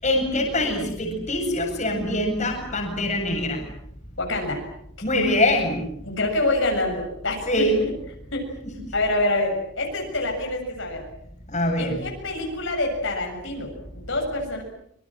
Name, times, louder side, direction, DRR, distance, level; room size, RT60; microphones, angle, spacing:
voice 1, 0.0-3.7 5.0-5.9 7.5-7.8 8.6-8.7 11.5-12.0, left 1 dB, 35° left, 2 dB, 7.6 m, -23 dB
voice 2, 4.2-4.6 6.0-7.9 8.3-8.5 8.9-11.0 11.8-14.6, left 2 dB, 60° left, 1 dB, 7.0 m, -26 dB
26.5 x 26.0 x 7.6 m, 0.73 s
head